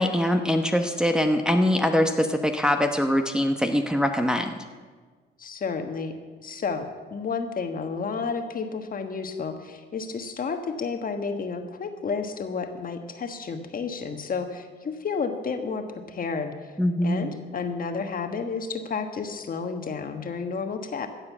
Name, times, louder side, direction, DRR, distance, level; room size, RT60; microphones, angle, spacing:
voice 1, 0.0-4.5 16.8-17.4, left 1 dB, 5° right, 4 dB, 0.9 m, -23 dB
voice 2, 5.4-6.1 6.4-16.5 17.0-21.1, left 5 dB, 45° left, 6 dB, 1.4 m, -31 dB
14.5 x 7.7 x 7.2 m, 1.5 s
cardioid pair, 90°, 20 cm